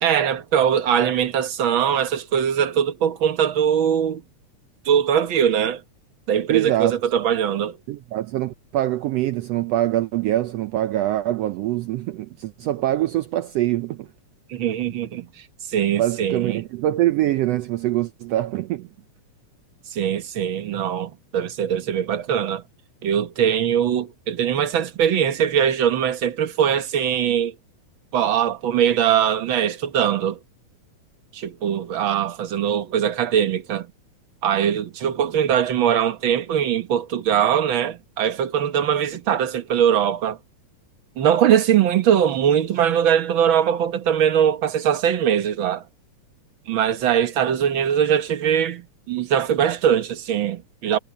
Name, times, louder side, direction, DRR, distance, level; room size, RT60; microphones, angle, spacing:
voice 1, 0.0-4.2 4.8-5.8 6.3-7.8 14.5-15.3 15.7-16.6 19.9-22.6 23.0-27.5 28.1-30.4 31.3-33.9 34.4-40.4 41.2-45.8 46.7-51.0, right 9 dB, 55° right, 1.6 m, -21 dB
voice 2, 6.5-7.0 7.9-14.1 16.0-18.9, right 14 dB, 80° right, 1.5 m, -24 dB
omnidirectional pair, 3.5 m